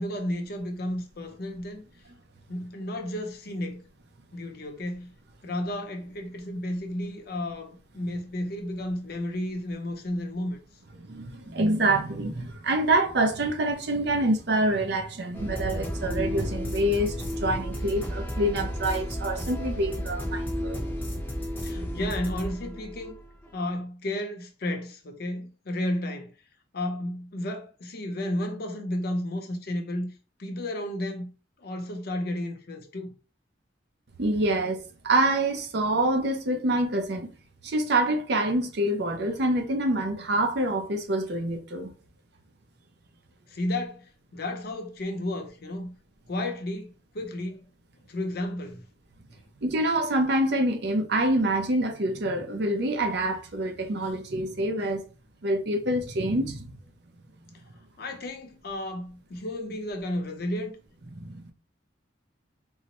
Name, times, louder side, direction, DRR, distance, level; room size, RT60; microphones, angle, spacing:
voice 1, 0.0-1.8 2.5-3.8 4.3-5.1 5.4-10.6 20.8-21.0 21.6-23.1 23.5-26.3 26.7-30.1 30.4-31.3 31.6-33.1 43.5-45.9 46.3-47.6 48.1-48.8 58.0-60.8, left 1 dB, 50° left, 0.6 m, -32 dB
voice 2, 11.0-20.8 34.2-37.3 37.6-41.9 49.6-55.0 55.4-56.7 61.2-61.4, right 1 dB, 60° right, 0.5 m, -26 dB
sound 1, 15.3-23.5, equal, 10° left, 0.7 m, -33 dB
3.8 x 2.0 x 2.9 m
head